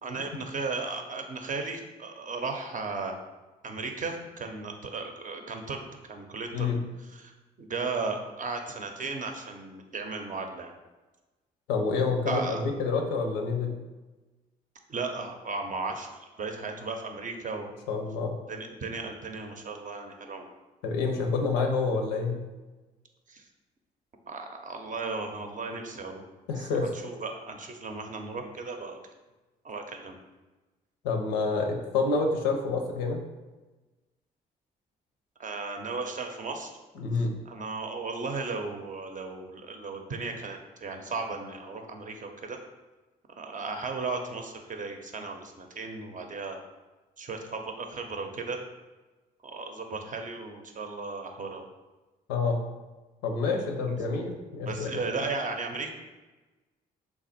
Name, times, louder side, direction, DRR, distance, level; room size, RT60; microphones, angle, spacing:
voice 1, 0.0-3.1 3.6-6.7 7.0-7.3 7.6-10.7 12.3-12.6 14.9-17.7 18.5-20.5 23.3-23.5 24.3-26.2 26.6-29.0 29.6-30.1 35.4-36.7 37.1-42.6 43.4-46.6 47.2-48.6 49.4-51.6 53.9-54.0 54.7-55.9, right 4 dB, 40° right, 4 dB, 0.6 m, -35 dB
voice 2, 11.7-13.7 17.9-18.3 20.8-22.4 26.5-26.9 31.0-33.2 37.0-37.3 52.3-52.6 53.2-55.0, left 4 dB, 90° left, 3 dB, 0.5 m, -28 dB
3.2 x 2.4 x 4.1 m, 1.2 s
hypercardioid pair, 50°, 20 cm